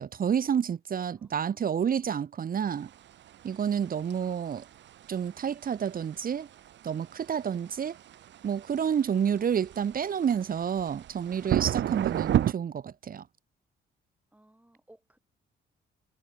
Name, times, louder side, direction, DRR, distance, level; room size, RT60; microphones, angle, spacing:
voice 1, 0.0-2.9 3.4-4.6 5.1-6.5 6.8-8.0 8.4-13.2, right 8 dB, 45° right, 1.1 m, -29 dB
voice 2, 1.1-2.2 14.3-15.2, right 1 dB, 5° right, 7.4 m, -60 dB
sound 1, 2.7-12.5, right 11 dB, 65° right, 1.1 m, -33 dB
cardioid pair, 90°, 20 cm